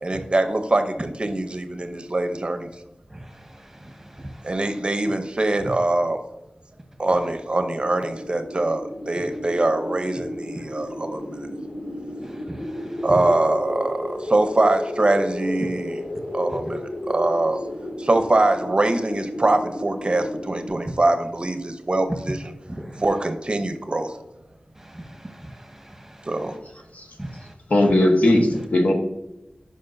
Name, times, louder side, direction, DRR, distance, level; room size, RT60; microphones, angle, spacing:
voice 1, 0.0-2.7 4.4-6.2 7.0-11.5 13.0-16.0 16.3-17.6 18.0-22.5 23.0-24.2 26.3-26.5, right 2 dB, 40° right, 8 dB, 0.7 m, -23 dB
sound 1, 7.6-20.7, left 1 dB, 90° left, 2.0 m, -33 dB
voice 2, 12.5-12.9 22.8-23.0 24.8-26.3 27.2-27.5, right 1 dB, 15° right, 4 dB, 1.1 m, -40 dB
voice 3, 27.7-28.9, left 1 dB, 70° left, 2 dB, 1.2 m, -18 dB
9.7 x 5.2 x 2.6 m, 0.95 s
wide cardioid pair, 70°, 3 cm